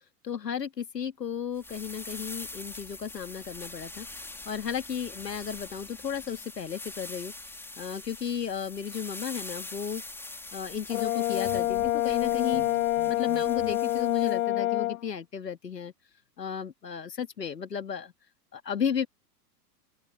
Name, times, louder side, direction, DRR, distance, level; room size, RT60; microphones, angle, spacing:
voice 1, 0.2-4.1 4.5-7.3 7.8-10.0 10.5-12.6 13.1-15.9 16.4-18.1 18.5-19.1, left 7 dB, 80° left, 1.9 m, -34 dB
sound 1, 1.6-14.4, left 2 dB, 5° left, 2.1 m, -43 dB
Brass instrument, 10.9-15.0, left 15 dB, 60° left, 0.6 m, -27 dB
sound 2, 11.3-13.7, right 27 dB, 40° right, 4.0 m, -48 dB
open air
figure-of-eight pair, 100°, 48 cm